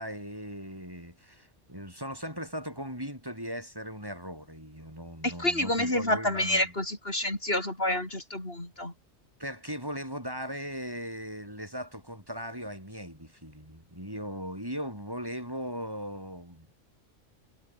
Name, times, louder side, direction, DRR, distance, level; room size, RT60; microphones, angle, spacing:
voice 1, 0.0-6.7 9.4-16.7, equal, 15° right, 7.0 m, -38 dB
voice 2, 5.2-8.9, left 1 dB, 50° left, 6.2 m, -28 dB
omnidirectional pair, 1.3 m